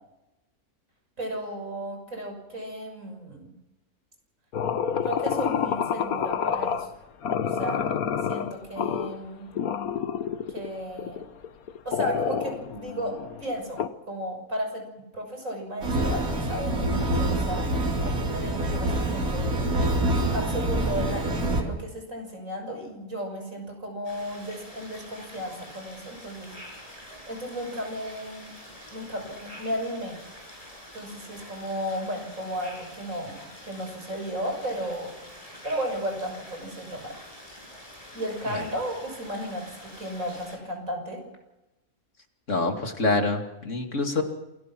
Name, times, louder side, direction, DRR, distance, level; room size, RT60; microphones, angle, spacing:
voice 1, 1.2-3.5 5.0-6.9 7.4-8.0 8.3-9.5 10.5-11.2 11.8-13.8 14.1-14.8 15.1-19.6 20.3-26.6 27.3-28.5 28.9-30.2 30.9-35.1 35.6-37.2 38.1-41.2, equal, 65° right, 4 dB, 6.8 m, -34 dB
sound 1, 4.5-6.9 7.2-9.2 9.6-10.7 11.0-13.9, left 7 dB, 85° left, 1.5 m, -28 dB
sound 2, 15.8-21.6, right 1 dB, 85° right, 3.3 m, -26 dB
sound 3, 24.0-40.6, equal, 25° left, 6.9 m, -46 dB
voice 2, 42.5-44.2, left 3 dB, 60° left, 4 dB, 2.8 m, -26 dB
28.0 x 17.0 x 6.2 m, 0.95 s
omnidirectional pair, 1.5 m